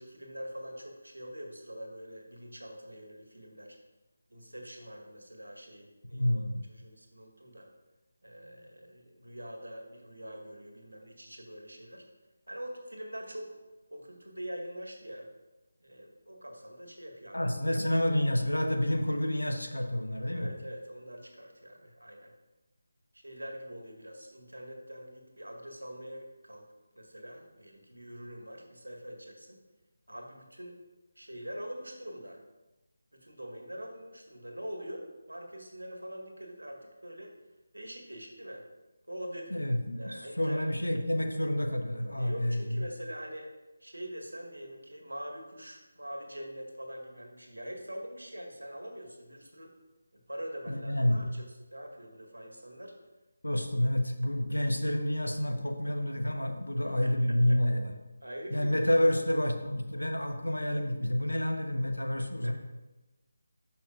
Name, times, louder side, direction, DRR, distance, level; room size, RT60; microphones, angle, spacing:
voice 1, 0.0-3.8 4.3-6.4 6.7-7.7 8.2-12.0 12.5-13.5 13.9-15.3 15.8-17.5 20.3-22.3 23.1-26.7 26.9-29.6 30.1-30.8 31.1-32.4 33.1-37.3 37.7-38.6 39.1-39.7 40.0-40.7 42.2-43.5 43.8-49.7 50.1-52.9 53.8-53.9 56.8-57.6 58.2-58.9 62.2-62.5, equal, 75° right, 1 dB, 1.7 m, -44 dB
voice 2, 6.1-6.6 17.3-20.5 39.5-42.6 50.7-51.2 53.4-57.9 58.5-62.5, left 1 dB, 80° left, 4 dB, 1.0 m, -29 dB
12.5 x 5.8 x 2.5 m, 1.1 s
figure-of-eight pair, 155°, 0 cm